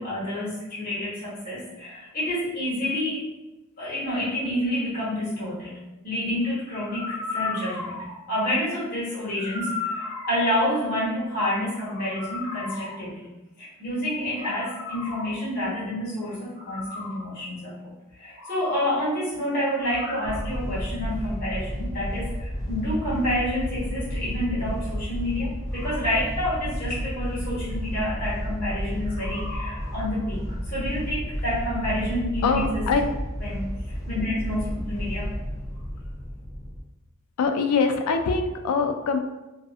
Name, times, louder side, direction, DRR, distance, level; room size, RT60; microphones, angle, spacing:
voice 1, 0.0-3.2 3.8-5.8 6.0-13.2 13.6-32.8 33.4-35.3, left 1 dB, 40° left, -10 dB, 1.1 m, -28 dB
sound 1, 20.2-36.8, equal, 15° left, 0.4 m, -32 dB
voice 2, 32.4-33.0 37.4-39.2, left 4 dB, 85° left, 6 dB, 0.3 m, -23 dB
2.4 x 2.4 x 2.4 m, 1.0 s
head